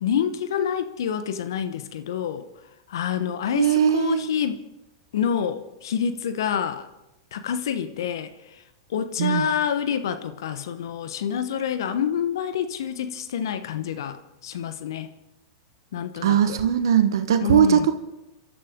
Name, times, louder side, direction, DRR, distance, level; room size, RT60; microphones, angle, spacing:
voice 1, 0.0-2.5 2.9-4.6 5.1-6.9 7.3-8.3 8.9-15.1 15.9-16.6 17.4-17.9, left 8 dB, 70° left, 1.1 m, -27 dB
voice 2, 3.6-4.3 9.2-9.5 16.2-17.9, right 9 dB, 70° right, 1.1 m, -19 dB
29.5 x 13.0 x 3.7 m
hypercardioid pair, 100°, 2 cm